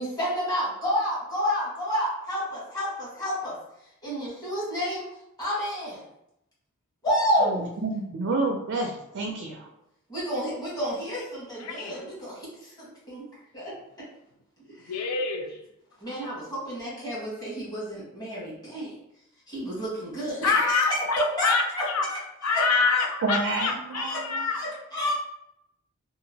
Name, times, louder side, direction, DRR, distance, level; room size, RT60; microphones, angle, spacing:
voice 1, 0.0-3.6 4.0-5.0 5.4-6.0 7.0-7.7 10.1-13.2 13.5-13.7 14.8-14.9 16.0-18.9 19.5-21.0 21.4-23.0 23.6-23.7 24.0-24.2 24.5-25.1, equal, 20° left, -8 dB, 1.3 m, -30 dB
voice 2, 7.4-9.7 23.2-24.5, right 3 dB, 55° right, 2 dB, 0.4 m, -29 dB
voice 3, 11.6-11.9 14.9-15.5 20.4-22.1 22.4-24.6, left 4 dB, 90° left, 4 dB, 0.5 m, -26 dB
2.9 x 2.4 x 2.7 m, 0.80 s
head